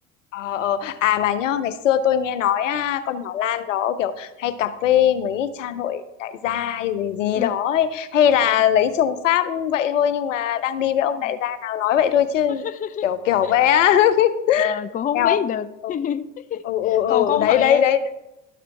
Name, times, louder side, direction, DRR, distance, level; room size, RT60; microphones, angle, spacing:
voice 1, 0.3-12.6 13.0-14.8 15.1-15.4 15.8-15.9 16.6-18.0, left 10 dB, 85° left, 14 dB, 0.7 m, -21 dB
voice 2, 12.6-13.1 13.4-13.8 14.6-16.7 17.1-17.8, left 9 dB, 25° left, 13 dB, 0.5 m, -27 dB
12.5 x 5.0 x 4.5 m, 0.92 s
hypercardioid pair, 70°, 37 cm